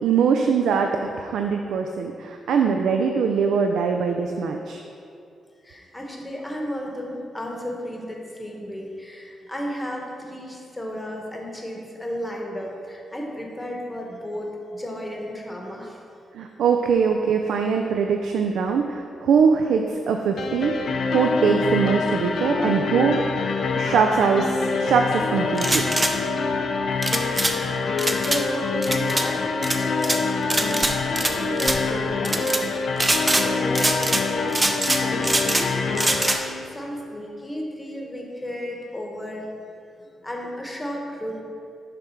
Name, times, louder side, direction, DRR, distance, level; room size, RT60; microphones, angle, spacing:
voice 1, 0.0-4.8 16.3-23.2 23.8-26.2, right 6 dB, 85° right, 4 dB, 0.4 m, -22 dB
voice 2, 5.6-16.0 27.1-33.1 33.4-39.5 40.0-41.4, equal, 10° left, -1 dB, 0.9 m, -34 dB
sound 1, 20.4-36.4, left 4 dB, 60° left, 0.5 m, -25 dB
sound 2, 25.5-26.1 27.0-27.5 28.0-28.4 28.8-29.3 29.6-30.2 30.5-31.3 31.6-31.8 32.2-32.6 33.0-33.5 33.7-34.2 34.5-35.7 35.9-36.4, right 2 dB, 15° right, 0.4 m, -23 dB
6.8 x 3.6 x 5.6 m, 2.5 s
wide cardioid pair, 145°, 0 cm